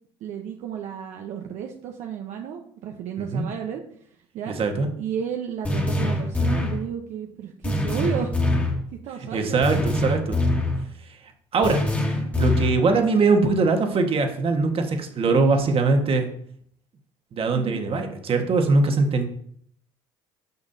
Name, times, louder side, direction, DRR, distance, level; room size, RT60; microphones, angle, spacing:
voice 1, 0.2-3.8 4.3-4.6 5.0-8.4 9.0-9.6 12.2-12.3 17.5-17.8, right 8 dB, 65° right, 2 dB, 0.8 m, -32 dB
voice 2, 4.5-4.9 9.3-10.4 11.5-11.8 12.4-16.3 17.3-19.3, right 3 dB, 45° right, 4 dB, 1.5 m, -21 dB
sound 1, 5.6-6.8 7.6-8.8 9.6-10.8 11.6-12.8, left 1 dB, 10° left, 1.8 m, -24 dB
9.5 x 6.1 x 2.7 m, 0.64 s
supercardioid pair, 90°, 13 cm